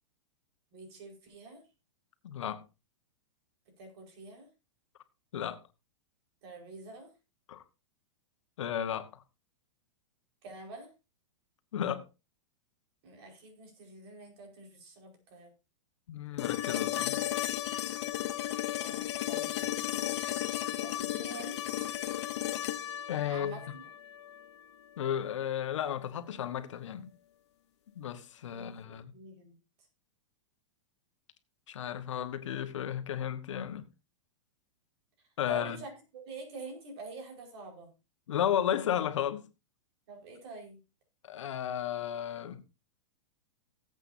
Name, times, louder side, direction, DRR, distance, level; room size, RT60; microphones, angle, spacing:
voice 1, 0.7-1.6 3.7-4.5 6.4-7.1 10.4-10.9 13.0-15.5 18.8-19.9 20.8-21.9 23.3-23.9 28.5-29.5 35.5-35.9 36.3-37.9 40.1-40.8, right 3 dB, 60° right, 5.0 m, -47 dB
voice 2, 2.2-2.6 5.3-5.6 7.5-7.6 8.6-9.2 11.7-12.0 16.1-17.2 23.1-23.6 25.0-27.1 27.9-29.1 31.7-33.9 35.4-35.8 38.3-39.5 41.2-42.6, left 10 dB, 80° left, 1.4 m, -33 dB
sound 1, 16.4-24.4 26.6-26.7, left 13 dB, 65° left, 0.9 m, -34 dB
18.5 x 8.1 x 2.7 m
hypercardioid pair, 140°, 16 cm